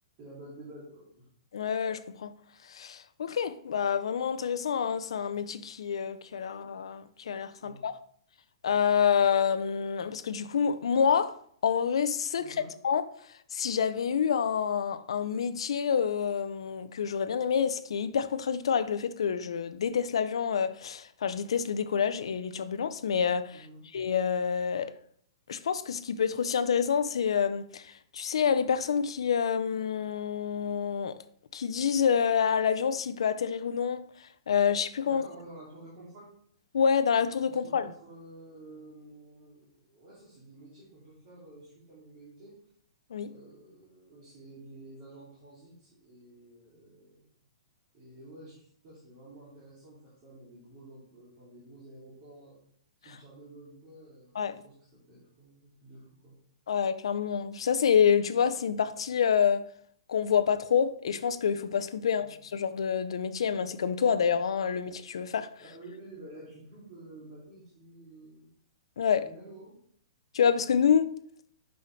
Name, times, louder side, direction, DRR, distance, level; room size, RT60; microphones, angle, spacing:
voice 1, 0.2-1.3 7.6-7.9 12.4-12.7 23.5-23.8 35.0-36.3 37.5-42.6 43.2-47.2 47.9-52.6 53.0-56.4 62.0-62.3 65.6-68.5 69.2-69.8, right 1 dB, 20° right, 2.5 m, -50 dB
voice 2, 1.5-2.3 2.7-8.0 8.6-11.4 11.6-12.5 12.8-13.0 13.5-23.7 23.9-24.9 25.5-31.2 31.5-34.0 34.5-35.2 36.7-37.9 43.1-43.3 54.3-54.6 56.7-59.7 60.1-65.5 69.0-69.3 70.3-71.2, left 7 dB, 75° left, 0.6 m, -27 dB
8.3 x 5.6 x 3.2 m
hypercardioid pair, 180°, 3 cm